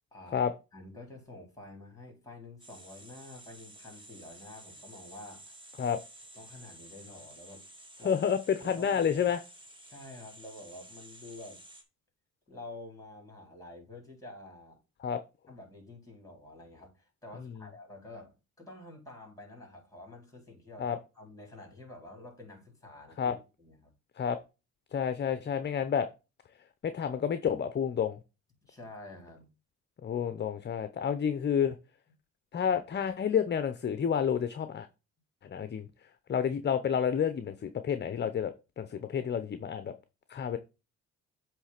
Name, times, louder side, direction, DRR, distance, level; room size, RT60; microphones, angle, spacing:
voice 1, 0.1-0.4 0.7-5.5 6.3-7.6 8.0-8.2 8.6-9.4 9.9-11.6 12.5-14.8 15.5-23.9 28.6-29.5, left 2 dB, 10° left, 4.3 m, -49 dB
sound 1, 2.6-11.8, right 1 dB, 15° right, 1.8 m, -52 dB
voice 2, 8.0-9.4 15.0-15.2 17.5-17.6 20.8-21.0 23.2-23.3 24.2-24.4 24.9-26.1 26.8-28.2 30.0-31.8 32.5-34.9 35.4-35.9 36.3-39.9 40.3-40.6, left 7 dB, 35° left, 0.7 m, -30 dB
8.0 x 3.2 x 5.8 m
supercardioid pair, 80°, 31 cm